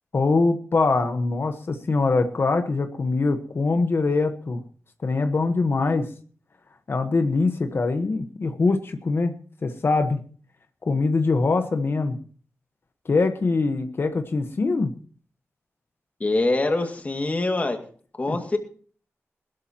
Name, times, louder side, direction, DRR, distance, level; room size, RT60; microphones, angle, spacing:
voice 1, 0.1-4.6 5.0-6.1 6.9-9.3 9.6-10.2 10.8-12.2 13.0-14.9 18.3-18.4, left 3 dB, 50° left, 7 dB, 1.2 m, -23 dB
voice 2, 16.2-17.8 18.2-18.6, left 2 dB, 30° left, 5 dB, 2.2 m, -24 dB
21.0 x 13.0 x 3.0 m, 0.43 s
wide cardioid pair, 140°, 5 cm